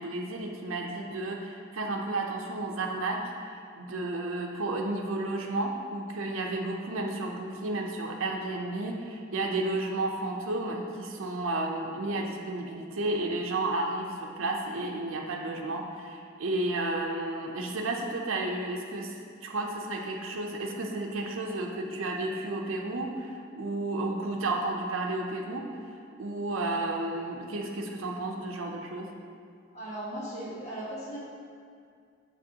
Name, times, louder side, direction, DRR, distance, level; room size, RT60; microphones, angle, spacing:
voice 1, 0.0-19.1 19.4-25.7 26.2-29.1, right 2 dB, 85° right, 1 dB, 0.6 m, -32 dB
voice 2, 29.7-31.2, right 1 dB, 35° left, -7 dB, 1.2 m, -37 dB
6.7 x 5.1 x 2.8 m, 2.3 s
head